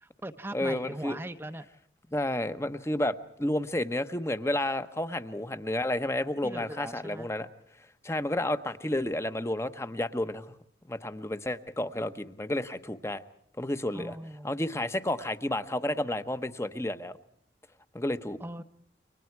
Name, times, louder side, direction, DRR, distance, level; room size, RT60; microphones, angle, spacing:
voice 1, 0.0-1.7 6.4-7.3 13.9-14.6 18.4-18.6, right 1 dB, 15° right, 9 dB, 0.8 m, -40 dB
voice 2, 0.5-1.2 2.1-7.5 8.0-10.5 10.9-13.2 13.6-14.2 14.4-17.2 17.9-18.4, left 1 dB, 15° left, 11 dB, 1.0 m, -31 dB
29.5 x 24.5 x 4.7 m, 0.67 s
head